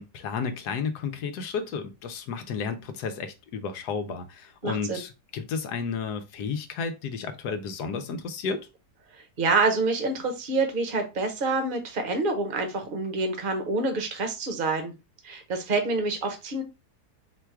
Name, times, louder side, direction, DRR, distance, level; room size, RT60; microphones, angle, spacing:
voice 1, 0.0-8.7, left 5 dB, 80° left, 1.2 m, -32 dB
voice 2, 4.6-5.0 9.4-14.9 15.2-16.6, right 3 dB, 35° right, 1.0 m, -27 dB
4.4 x 2.3 x 4.4 m
omnidirectional pair, 1.7 m